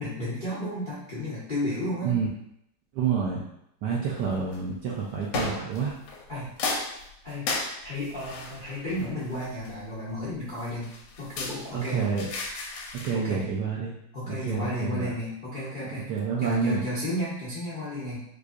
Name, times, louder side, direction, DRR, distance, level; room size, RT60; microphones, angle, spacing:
voice 1, 0.0-2.2 6.3-6.5 7.2-7.5 7.8-12.2 13.1-13.4 14.1-16.1 16.4-18.2, left 1 dB, 50° left, -10 dB, 0.6 m, -33 dB
voice 2, 2.9-3.5 3.8-5.9 11.7-12.3 12.9-14.0 14.3-15.1 15.9-16.9, right 6 dB, 75° right, -4 dB, 1.0 m, -28 dB
sound 1, 4.2-4.6 5.3-6.3 6.6-9.9 10.6-13.2, left 3 dB, 75° left, 1.3 m, -34 dB
4.6 x 2.6 x 2.4 m, 0.76 s
omnidirectional pair, 2.3 m